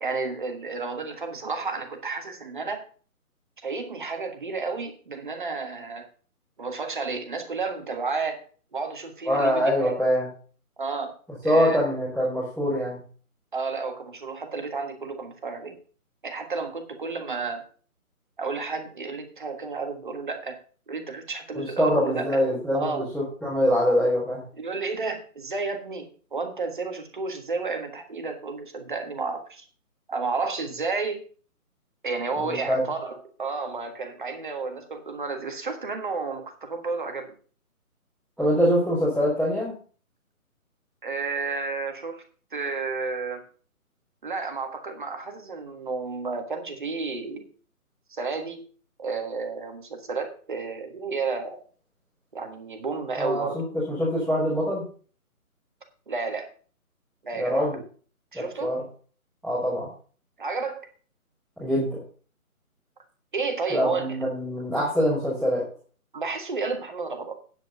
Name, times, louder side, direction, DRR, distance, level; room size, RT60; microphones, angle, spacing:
voice 1, 0.0-2.9 3.6-6.1 6.6-8.4 8.7-10.0 10.8-11.1 11.4-11.8 13.5-15.8 16.2-17.6 18.4-20.6 20.9-22.4 22.7-23.1 24.6-29.6 30.1-31.2 32.0-37.3 41.0-42.2 42.5-43.4 44.2-47.5 48.1-48.6 49.0-51.6 52.3-53.6 56.1-56.5 57.2-57.8 58.3-58.8 60.4-60.9 63.3-64.2 66.1-67.4, right 4 dB, 35° right, 6 dB, 1.5 m, -31 dB
voice 2, 9.2-10.2 11.4-13.0 21.5-24.4 32.4-32.8 38.4-39.7 53.2-54.8 57.3-57.8 58.6-58.8 59.4-59.9 61.6-62.0 63.7-65.6, equal, ahead, -16 dB, 1.1 m, -24 dB
9.0 x 8.2 x 5.4 m, 0.42 s
hypercardioid pair, 175°, 44 cm